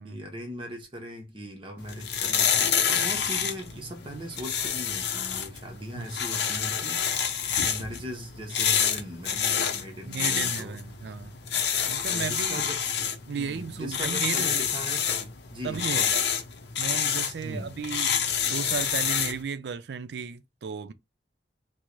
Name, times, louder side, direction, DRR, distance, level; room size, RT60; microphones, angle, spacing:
voice 1, 0.0-7.0 7.6-10.8 12.1-12.8 13.3-16.1 17.4-17.7, equal, 30° right, 0.6 m, -39 dB
sound 1, 1.8-19.4, left 8 dB, 70° left, 0.6 m, -28 dB
voice 2, 10.1-11.3 11.9-12.7 13.3-14.5 15.6-16.2 16.8-18.2 18.5-20.9, right 6 dB, 70° right, 0.4 m, -34 dB
4.5 x 2.0 x 2.4 m
head